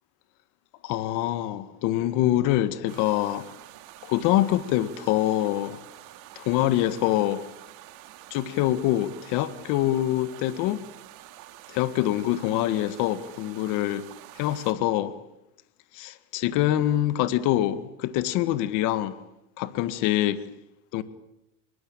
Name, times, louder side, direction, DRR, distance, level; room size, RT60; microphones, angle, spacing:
voice 1, 0.8-3.4 4.0-5.8 6.4-7.4 8.3-10.8 11.7-14.1 14.4-15.1 15.9-19.2 19.6-20.4 20.9-21.0, left 13 dB, 55° left, 1.8 m, -25 dB
sound 1, 2.9-14.7, right 14 dB, 55° right, 2.7 m, -48 dB
24.5 x 23.0 x 8.9 m
supercardioid pair, 150°, 37 cm